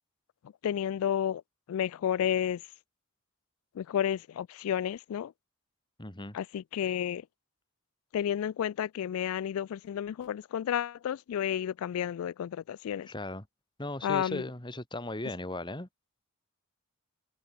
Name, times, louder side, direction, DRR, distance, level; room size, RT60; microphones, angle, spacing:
voice 1, 0.6-1.4 1.7-2.6 3.8-5.3 6.3-7.2 8.1-13.1 14.0-14.4, left 9 dB, 75° left, 0.3 m, -31 dB
voice 2, 6.0-6.4 13.1-13.5 13.8-15.9, left 1 dB, 20° left, 2.3 m, -37 dB
head